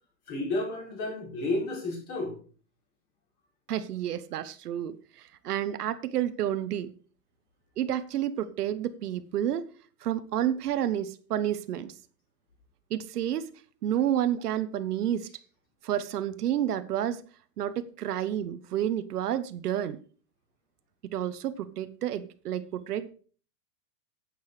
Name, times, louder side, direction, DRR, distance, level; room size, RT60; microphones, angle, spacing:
voice 1, 0.3-2.3, left 2 dB, 30° left, -1 dB, 5.5 m, -31 dB
voice 2, 3.7-6.9 7.8-9.6 10.0-11.9 12.9-13.5 13.8-15.3 15.8-17.2 17.6-20.0 21.0-23.1, right 11 dB, 65° right, 12 dB, 1.1 m, -30 dB
11.5 x 8.0 x 4.9 m, 0.41 s
supercardioid pair, 175°, 49 cm